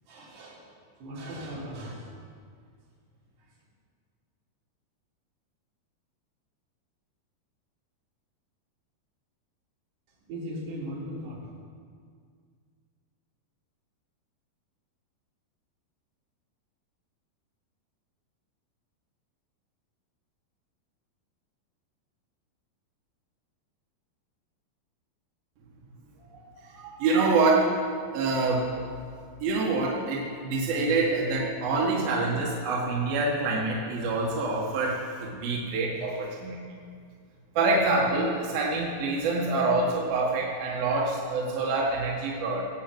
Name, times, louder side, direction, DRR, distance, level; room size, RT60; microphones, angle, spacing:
voice 1, 0.1-0.7 1.0-2.2 10.3-11.4, equal, 90° right, -6 dB, 5.8 m, -38 dB
voice 2, 26.2-27.7 28.1-28.7 29.4-36.6 37.5-42.6, right 3 dB, 65° right, -3 dB, 3.4 m, -26 dB
20.0 x 8.4 x 8.0 m, 2.1 s
omnidirectional pair, 4.6 m